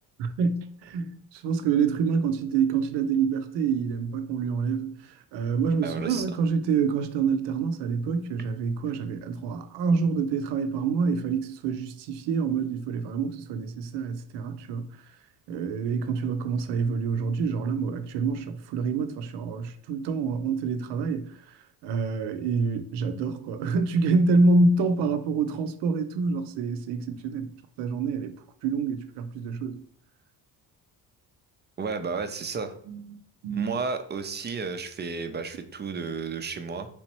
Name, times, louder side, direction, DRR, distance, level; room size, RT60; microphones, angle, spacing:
voice 1, 0.2-4.9 5.3-14.9 15.5-21.6 21.8-27.5 27.8-28.4 28.6-29.8 32.9-33.7, right 4 dB, 75° right, 0.6 m, -27 dB
voice 2, 5.8-6.2 31.8-32.8 33.5-36.9, right 5 dB, 25° right, 0.4 m, -32 dB
3.5 x 3.0 x 2.9 m
supercardioid pair, 80°, 42 cm